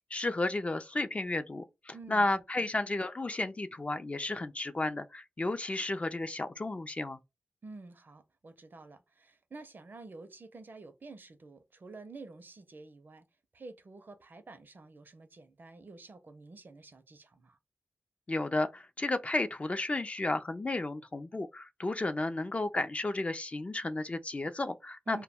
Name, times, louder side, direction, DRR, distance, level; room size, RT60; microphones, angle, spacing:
voice 1, 0.1-7.2 18.3-25.2, left 2 dB, 30° left, 0.3 m, -33 dB
voice 2, 1.9-2.3 2.6-2.7 7.6-13.3 13.5-17.6 25.1-25.2, right 3 dB, 50° right, 0.5 m, -49 dB
2.1 x 2.1 x 3.4 m
cardioid pair, 60°, 4 cm